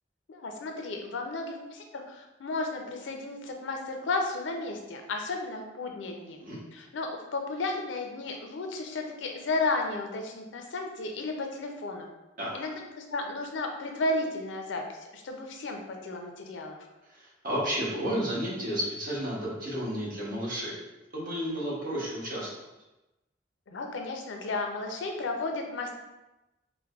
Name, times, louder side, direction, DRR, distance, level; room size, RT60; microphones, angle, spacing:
voice 1, 0.3-6.4 6.7-12.1 12.5-16.8 23.7-26.0, left 2 dB, 75° left, 3 dB, 0.4 m, -33 dB
voice 2, 6.2-6.6 12.4-12.7 17.1-20.8 21.1-22.5, equal, 45° right, -5 dB, 0.9 m, -32 dB
4.5 x 2.1 x 2.3 m, 1.0 s
head